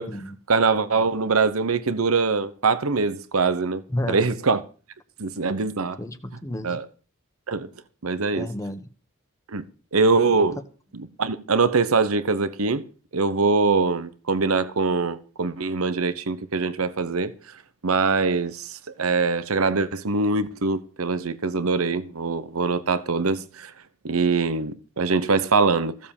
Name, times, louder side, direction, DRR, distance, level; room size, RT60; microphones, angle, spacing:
voice 1, 0.5-3.8 4.1-4.6 5.2-6.0 6.6-6.9 7.5-7.7 8.0-8.5 9.5-9.6 9.9-10.6 10.9-12.8 13.1-17.3 17.8-23.7 24.0-26.0, right 4 dB, 85° right, 1.0 m, -23 dB
voice 2, 3.9-4.2 6.0-6.8 8.3-8.9 10.3-10.5, left 1 dB, 15° left, 1.1 m, -31 dB
15.5 x 7.4 x 7.2 m
head